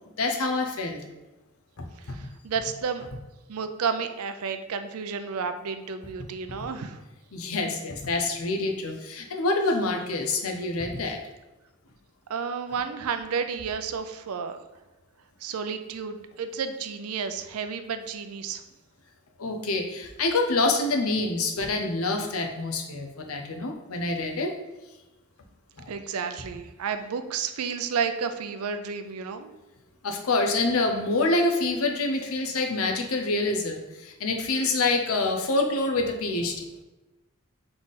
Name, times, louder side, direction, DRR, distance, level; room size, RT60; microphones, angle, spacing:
voice 1, 0.2-1.0 1.8-2.2 7.3-11.2 19.4-24.5 25.8-25.9 30.0-36.6, left 2 dB, 80° left, 4 dB, 0.7 m, -26 dB
voice 2, 2.1-3.1 3.5-7.0 12.3-14.6 15.4-18.6 25.9-29.5, right 6 dB, 85° right, 9 dB, 0.4 m, -31 dB
3.7 x 3.3 x 4.0 m, 1.1 s
head